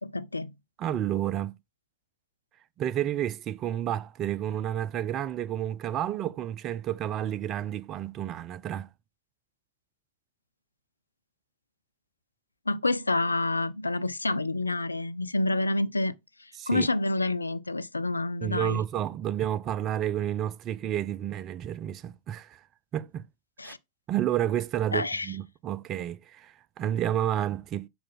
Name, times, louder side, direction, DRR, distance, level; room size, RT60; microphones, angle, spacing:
voice 1, 0.0-0.5 12.7-16.1 16.4-18.8 23.6-23.8 24.9-25.3, left 2 dB, 80° left, 0.4 m, -28 dB
voice 2, 0.8-1.5 2.8-8.9 16.6-16.9 18.4-22.6 22.9-23.2 23.6-23.7 24.1-27.9, right 11 dB, 35° right, 0.5 m, -30 dB
6.8 x 4.9 x 3.9 m
figure-of-eight pair, 90°, 0 cm